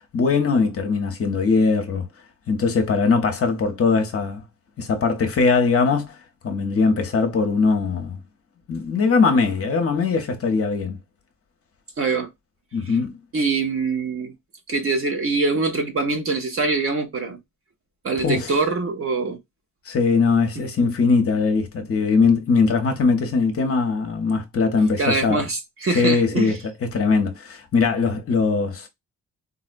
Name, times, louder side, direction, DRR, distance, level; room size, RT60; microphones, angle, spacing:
voice 1, 0.1-2.1 2.5-4.4 4.8-6.2 6.4-8.2 8.7-11.0 12.7-13.1 18.2-18.5 19.9-25.4 25.9-28.9, left 4 dB, 40° left, 0.7 m, -21 dB
voice 2, 12.0-12.3 12.9-13.0 13.3-14.3 14.7-17.4 18.0-19.4 20.8-20.9 25.0-26.6, right 3 dB, 40° right, 0.8 m, -24 dB
3.9 x 2.1 x 2.4 m
cardioid pair, 130°, 34 cm